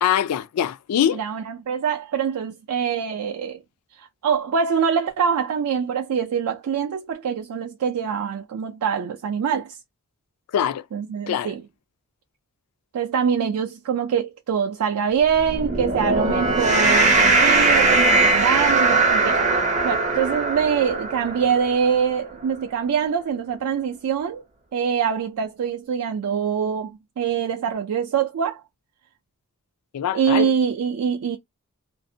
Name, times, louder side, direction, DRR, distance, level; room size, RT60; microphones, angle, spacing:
voice 1, 0.0-1.2 10.5-10.8 11.3-11.5 29.9-30.5, left 9 dB, 85° left, 0.3 m, -23 dB
voice 2, 1.1-3.6 3.9-9.8 10.9-11.6 12.9-19.4 19.8-24.4 24.7-28.6 30.1-31.4, right 7 dB, 75° right, 0.4 m, -24 dB
sound 1, 15.4-21.9, right 3 dB, 35° right, 0.6 m, -20 dB
2.5 x 2.1 x 2.6 m
head